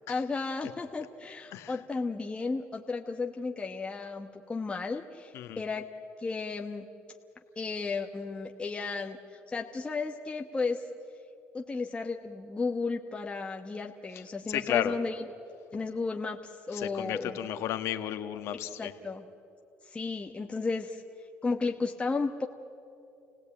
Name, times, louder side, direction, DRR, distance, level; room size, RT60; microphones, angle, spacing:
voice 1, 0.1-5.9 6.2-6.9 7.6-9.2 9.5-10.8 11.5-15.2 15.7-17.5 18.6-19.2 19.8-21.0 21.4-22.5, left 4 dB, 20° left, 3 dB, 1.2 m, -34 dB
voice 2, 14.5-14.9 16.7-18.9, left 11 dB, 70° left, 8 dB, 1.5 m, -32 dB
29.5 x 17.5 x 8.9 m, 2.7 s
supercardioid pair, 85°, 5 cm